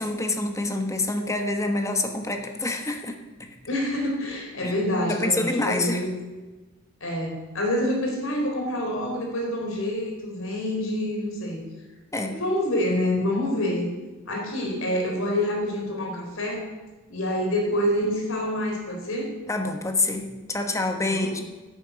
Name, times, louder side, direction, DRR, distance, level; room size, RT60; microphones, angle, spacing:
voice 1, 0.0-3.5 4.6-4.7 5.1-6.0 12.1-12.4 13.6-13.7 19.5-21.4, left 2 dB, 15° left, 5 dB, 1.2 m, -27 dB
voice 2, 3.7-6.2 7.0-11.6 12.3-13.9 14.3-16.7 17.1-19.3 21.0-21.3, left 1 dB, 75° left, 0 dB, 4.0 m, -27 dB
11.0 x 8.7 x 8.1 m, 1.2 s
head